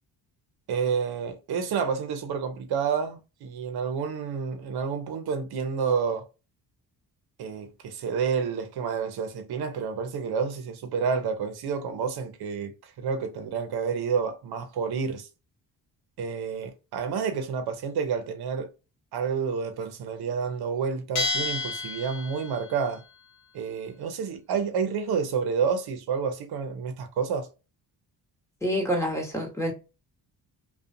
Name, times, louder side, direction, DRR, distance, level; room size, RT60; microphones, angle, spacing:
voice 1, 0.7-6.3 7.4-15.3 16.2-18.7 19.1-23.0 23.5-27.5, right 6 dB, 70° right, 0.8 m, -29 dB
Bell, 21.1-22.7, left 3 dB, 45° left, 0.9 m, -30 dB
voice 2, 28.6-29.7, equal, 5° left, 1.2 m, -27 dB
2.4 x 2.3 x 2.6 m
cardioid pair, 85°, 40 cm